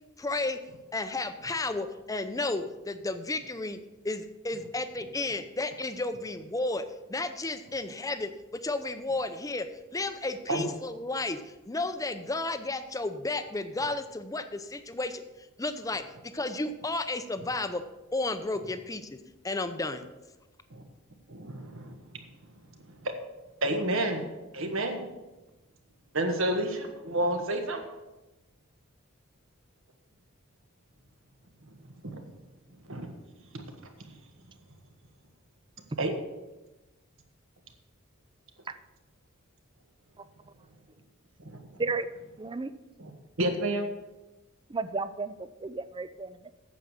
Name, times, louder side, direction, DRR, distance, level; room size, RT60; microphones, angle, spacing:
voice 1, 0.2-0.6 0.9-3.8 4.0-9.7 9.9-11.4 11.7-15.2 15.6-16.0 16.3-17.8 18.1-19.2 19.4-20.0, left 2 dB, 15° left, 9 dB, 0.7 m, -32 dB
voice 2, 21.3-22.0 23.0-23.1 23.6-24.2 24.5-25.0 26.1-27.8 32.0-32.2 32.9-33.1 36.0-36.1 41.4-41.6 43.0-43.1 43.4-43.9, right 1 dB, 65° right, 4 dB, 1.6 m, -29 dB
voice 3, 42.4-42.7 44.7-46.5, right 3 dB, 25° right, 13 dB, 0.5 m, -33 dB
9.2 x 7.4 x 6.6 m, 1.1 s
head